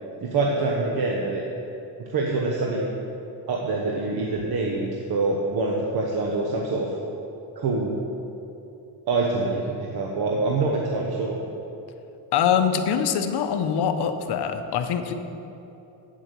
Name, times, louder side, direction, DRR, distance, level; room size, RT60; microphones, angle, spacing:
voice 1, 0.2-1.4 2.0-2.9 3.5-6.9 7.6-7.9 9.1-11.4, right 3 dB, 65° right, -1 dB, 1.1 m, -25 dB
voice 2, 12.3-15.1, left 7 dB, 75° left, 7 dB, 0.9 m, -23 dB
8.9 x 7.6 x 6.7 m, 2.9 s
cardioid pair, 150°, 40 cm